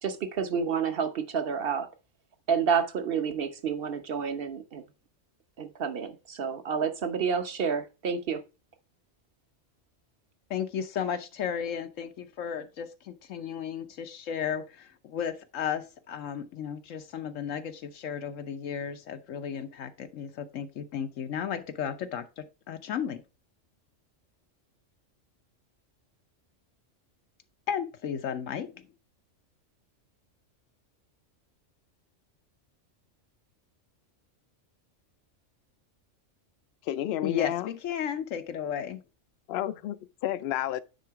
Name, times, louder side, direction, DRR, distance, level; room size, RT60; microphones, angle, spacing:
voice 1, 0.0-1.9 2.5-4.8 5.6-8.4, right 6 dB, 50° right, 1.1 m, -29 dB
voice 2, 10.5-23.2 27.7-28.8 37.2-39.0, left 8 dB, 85° left, 1.2 m, -34 dB
voice 3, 36.8-37.7 39.5-40.8, left 12 dB, 65° left, 0.7 m, -31 dB
9.5 x 3.8 x 4.6 m
omnidirectional pair, 1.3 m